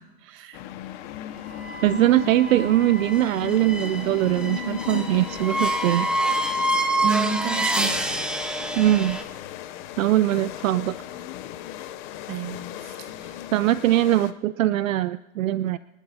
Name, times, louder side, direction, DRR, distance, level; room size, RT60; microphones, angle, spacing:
voice 1, 0.2-0.6 7.0-8.0 12.3-13.3, right 7 dB, 30° right, 8 dB, 1.3 m, -31 dB
sound 1, 0.5-14.3, left 11 dB, 35° left, 0.7 m, -36 dB
sound 2, 1.5-9.2, right 1 dB, ahead, 0.8 m, -27 dB
voice 2, 1.8-6.1 8.8-9.2 10.0-10.9 13.5-15.8, right 14 dB, 65° right, 16 dB, 0.5 m, -21 dB
26.0 x 12.0 x 2.8 m, 1.0 s
hypercardioid pair, 140°, 44 cm